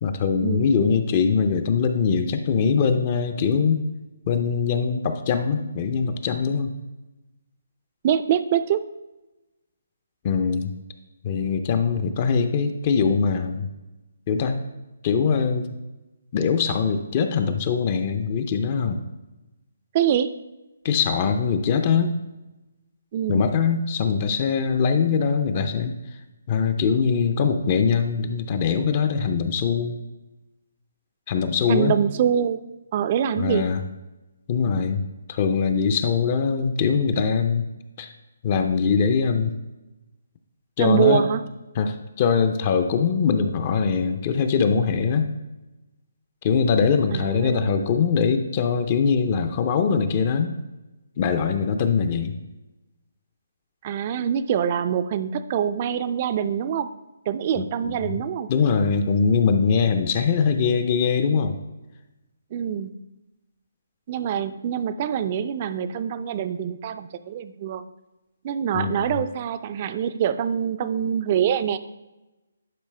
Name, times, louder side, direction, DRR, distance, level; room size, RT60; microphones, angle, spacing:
voice 1, 0.0-3.8 4.3-6.7 10.2-10.7 11.2-13.7 14.3-14.6 15.0-15.7 16.3-19.0 20.8-22.1 23.3-25.9 26.5-30.0 31.3-32.0 33.4-33.8 34.5-37.7 38.0-38.1 38.4-39.5 40.8-41.3 41.7-45.3 46.4-50.6 51.2-52.3 57.6-58.2 58.5-61.6 68.7-69.2, left 6 dB, 30° left, 8 dB, 0.5 m, -22 dB
voice 2, 8.0-8.8 19.9-20.3 23.1-23.5 31.7-32.6 32.9-33.7 40.8-41.4 47.1-47.9 53.8-56.9 57.3-58.5 62.5-62.9 64.1-67.8 68.4-71.8, right 9 dB, 30° right, 12 dB, 0.4 m, -24 dB
10.5 x 4.7 x 3.3 m, 1.0 s
hypercardioid pair, 160°, 0 cm